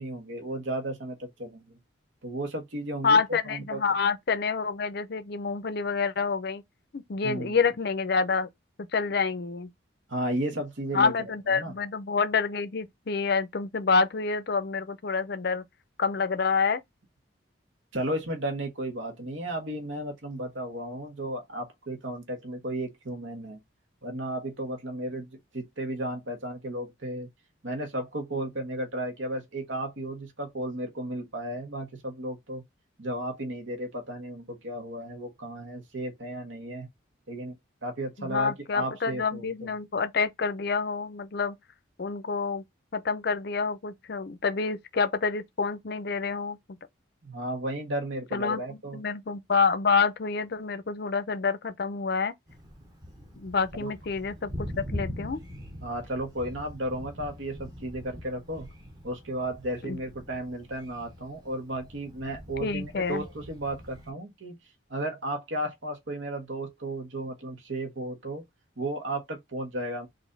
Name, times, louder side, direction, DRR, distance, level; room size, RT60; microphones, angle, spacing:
voice 1, 0.0-1.8 2.2-3.8 7.2-7.6 10.1-11.7 17.9-23.6 24.0-27.3 27.6-32.6 33.0-36.9 37.3-37.5 37.8-39.7 47.2-49.0 53.8-53.9 55.8-58.7 59.0-64.6 64.9-68.4 68.8-70.1, right 1 dB, 75° right, 1.4 m, -34 dB
voice 2, 3.0-6.6 6.9-8.5 8.9-9.7 10.9-15.6 16.0-16.8 38.2-41.6 42.0-42.6 42.9-46.6 48.3-52.3 53.3-55.4 59.8-60.0 62.6-63.2, left 5 dB, 50° left, 0.5 m, -27 dB
Thunder, 52.5-64.1, equal, 20° right, 1.0 m, -42 dB
4.0 x 2.6 x 3.9 m
head